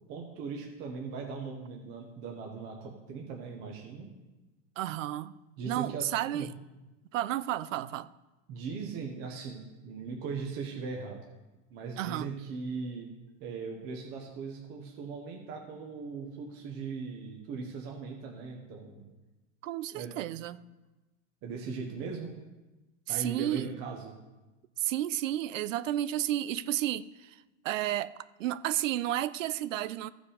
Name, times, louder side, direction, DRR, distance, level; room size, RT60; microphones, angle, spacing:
voice 1, 0.1-4.1 5.6-6.5 8.5-11.2 11.7-13.1 13.4-19.1 19.9-20.2 21.4-22.3 23.1-24.1, right 5 dB, 25° right, 0.9 m, -39 dB
voice 2, 4.8-5.3 5.6-6.5 7.1-8.1 12.0-12.3 19.6-20.6 23.1-23.7 24.8-28.1 28.4-30.1, right 13 dB, 85° right, 0.6 m, -32 dB
14.5 x 5.1 x 5.0 m
supercardioid pair, 170°, 37 cm